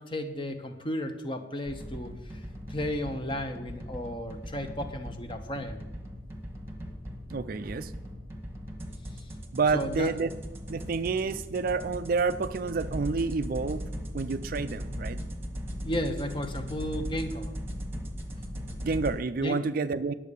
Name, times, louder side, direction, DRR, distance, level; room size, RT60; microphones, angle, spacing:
voice 1, 0.0-2.4 2.7-5.8 9.1-9.3 9.7-10.1 15.8-17.5 19.4-19.6, equal, 25° left, 7 dB, 0.9 m, -34 dB
sound 1, 1.6-19.2, equal, 10° right, 1.2 m, -39 dB
voice 2, 7.3-7.9 9.5-10.3 10.7-13.8 14.1-15.2 18.8-20.1, right 4 dB, 50° right, 12 dB, 0.4 m, -29 dB
10.0 x 7.4 x 6.8 m, 1.1 s
head